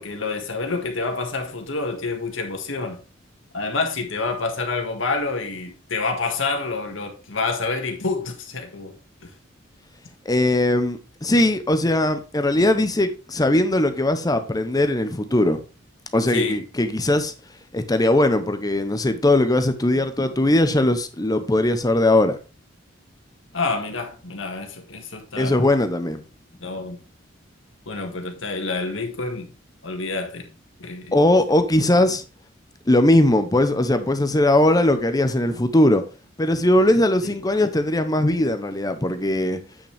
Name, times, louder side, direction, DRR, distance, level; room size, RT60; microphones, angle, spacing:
voice 1, 0.0-3.0 3.5-9.0 9.2-9.3 16.3-16.6 23.5-25.6 26.6-27.0 27.9-29.5 29.8-30.5 30.8-31.1 37.2-37.3, left 3 dB, 85° left, 1.8 m, -28 dB
voice 2, 10.3-15.6 16.1-17.3 17.7-22.4 25.4-26.2 31.1-32.2 32.9-36.0 36.4-39.6, left 1 dB, 20° left, 0.7 m, -19 dB
8.8 x 5.8 x 3.4 m
head